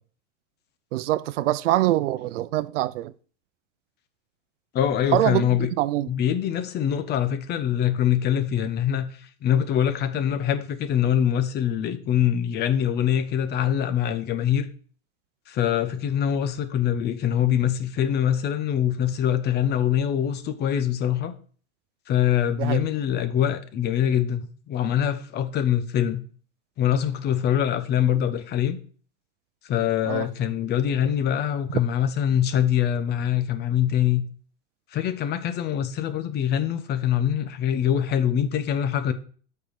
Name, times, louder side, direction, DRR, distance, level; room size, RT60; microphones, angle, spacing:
voice 1, 0.9-3.1 5.1-6.1 22.6-22.9 30.1-30.3, right 15 dB, 90° right, 0.6 m, -24 dB
voice 2, 4.7-5.7 6.1-14.7 15.5-21.3 22.1-26.2 26.8-28.8 29.6-34.2 34.9-39.1, left 10 dB, 30° left, 1.0 m, -24 dB
8.6 x 4.6 x 6.6 m
supercardioid pair, 155°, 36 cm